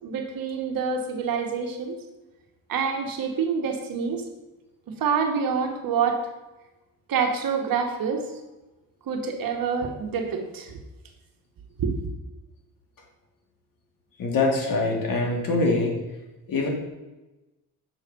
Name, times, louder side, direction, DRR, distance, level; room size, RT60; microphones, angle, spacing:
voice 1, 0.0-2.0 2.7-4.2 4.9-6.2 7.1-8.2 9.0-10.8 11.8-12.0, right 6 dB, 65° right, 4 dB, 1.3 m, -27 dB
voice 2, 14.2-16.0 16.5-16.7, left 3 dB, 60° left, 0 dB, 2.2 m, -23 dB
6.3 x 4.9 x 6.8 m, 1.1 s
cardioid pair, 125°, 37 cm